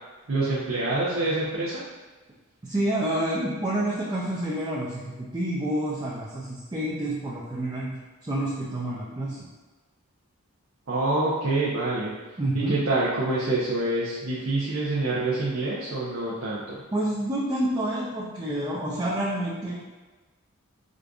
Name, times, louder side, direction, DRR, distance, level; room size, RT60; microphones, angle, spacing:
voice 1, 0.3-1.8 10.9-16.8, right 2 dB, 65° right, -7 dB, 0.6 m, -26 dB
voice 2, 2.6-7.9 8.2-9.4 12.4-12.8 16.9-19.8, right 1 dB, 20° right, -6 dB, 0.4 m, -28 dB
4.9 x 2.5 x 2.3 m, 1.3 s
head